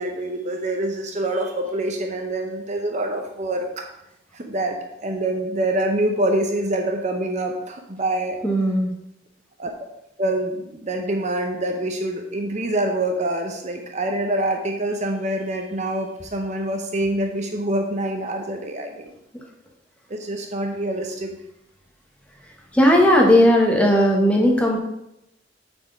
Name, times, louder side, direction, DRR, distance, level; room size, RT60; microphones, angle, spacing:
voice 1, 0.0-3.9 4.3-8.4 9.6-9.7 10.2-19.1 20.1-21.4, right 1 dB, 40° right, 3 dB, 0.7 m, -25 dB
voice 2, 8.4-8.9 22.7-24.8, equal, 5° left, 0 dB, 1.3 m, -16 dB
7.4 x 4.5 x 5.3 m, 0.85 s
head